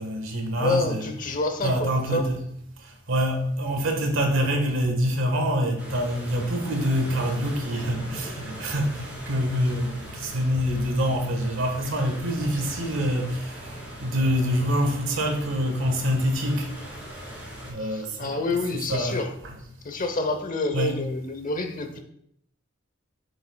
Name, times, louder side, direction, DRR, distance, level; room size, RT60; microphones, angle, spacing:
voice 1, 0.0-1.1 1.6-2.4 3.1-13.5 14.0-16.7 17.6-18.4 18.7-19.5 20.7-21.0, equal, 80° right, 1.4 m, -26 dB
voice 2, 0.6-2.3 17.8-19.3 19.8-22.0, left 2 dB, 45° left, 0.8 m, -28 dB
sound 1, 5.8-17.7, equal, 5° right, 2.9 m, -40 dB
8.9 x 6.6 x 2.3 m
head